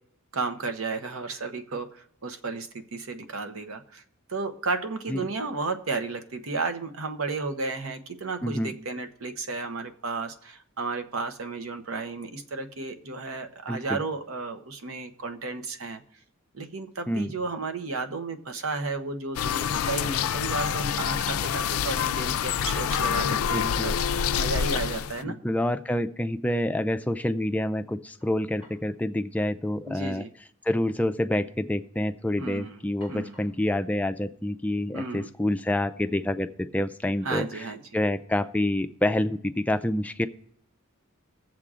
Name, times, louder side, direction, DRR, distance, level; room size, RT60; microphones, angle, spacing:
voice 1, 0.3-4.0 4.3-16.0 16.5-25.4 29.9-30.3 32.4-32.8 33.1-33.3 34.9-35.3 37.2-37.8, right 3 dB, 75° right, 6 dB, 0.8 m, -33 dB
voice 2, 8.4-8.7 13.7-14.0 17.1-17.3 23.5-23.9 25.2-30.2 30.6-37.7 37.9-40.3, left 1 dB, 5° left, 10 dB, 0.3 m, -27 dB
sound 1, 16.7-17.0 17.4-18.3 18.6-18.7 22.1-22.2 22.6-23.2 24.4-24.5 24.8-24.9 28.2-29.0 29.2-29.3 30.3-30.5 30.8-31.3 31.7-32.1 33.0-33.7, left 1 dB, 55° right, 4.1 m, -57 dB
sound 2, 19.4-25.2, left 8 dB, 85° left, 0.4 m, -27 dB
20.5 x 7.5 x 2.4 m, 0.68 s
head